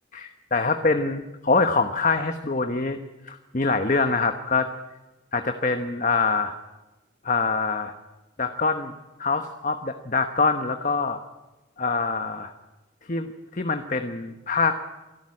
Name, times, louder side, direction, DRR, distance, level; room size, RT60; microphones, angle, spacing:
voice 1, 0.1-3.0 3.2-4.7 5.3-6.5 7.2-7.9 8.4-8.9 9.2-11.2 11.8-12.5 13.1-14.8, left 4 dB, 40° left, 7 dB, 1.1 m, -24 dB
27.0 x 12.5 x 9.8 m, 1.1 s
head